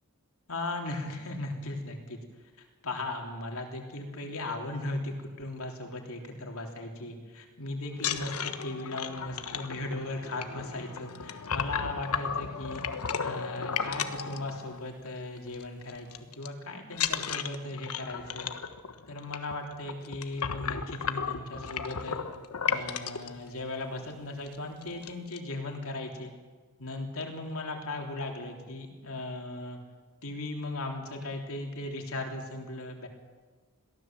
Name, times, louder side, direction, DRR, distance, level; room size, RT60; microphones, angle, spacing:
voice 1, 0.5-2.2 2.6-12.8 13.2-16.1 16.4-18.5 19.1-22.2 22.6-26.3 26.8-29.8 30.2-33.1, left 2 dB, 70° left, 2 dB, 3.5 m, -37 dB
sound 1, 7.9-15.1 15.4-15.6 15.9-16.5 16.9-23.3 24.0-24.1 24.4-24.6 24.8-25.4, left 7 dB, 90° left, 1.2 m, -34 dB
22.0 x 16.5 x 7.6 m, 1.4 s
head